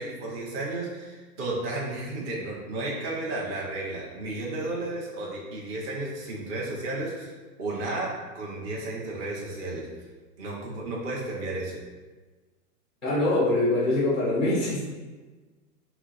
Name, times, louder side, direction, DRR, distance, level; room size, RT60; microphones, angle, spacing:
voice 1, 0.0-7.3 7.6-9.9 10.4-11.8, right 2 dB, 25° right, -4 dB, 0.8 m, -33 dB
voice 2, 13.0-14.8, left 2 dB, ahead, -6 dB, 0.3 m, -23 dB
5.7 x 2.0 x 4.2 m, 1.3 s
hypercardioid pair, 150°, 47 cm